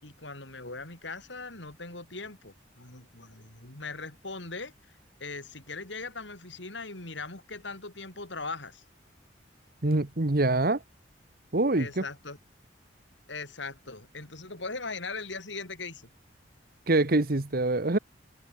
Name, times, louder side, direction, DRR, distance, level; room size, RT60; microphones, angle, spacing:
voice 1, 0.0-4.7 5.2-8.8 11.7-12.4 13.3-16.1, left 3 dB, 75° left, 5.5 m, -40 dB
voice 2, 9.8-10.8 11.5-12.0 16.9-18.0, right 2 dB, 50° right, 1.2 m, -25 dB
head